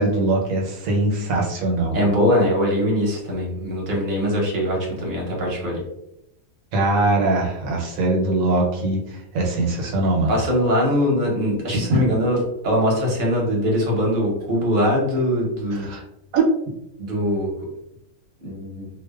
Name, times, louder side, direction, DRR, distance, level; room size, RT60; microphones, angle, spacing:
voice 1, 0.0-2.0 6.7-10.3 11.7-12.0 15.8-16.0 16.3-16.5, right 2 dB, 80° right, 0 dB, 1.0 m, -21 dB
voice 2, 1.9-5.8 10.3-12.4 12.6-15.9 17.0-17.5 18.4-18.9, equal, 45° right, -2 dB, 0.8 m, -22 dB
2.6 x 2.1 x 2.3 m, 0.83 s
omnidirectional pair, 1.4 m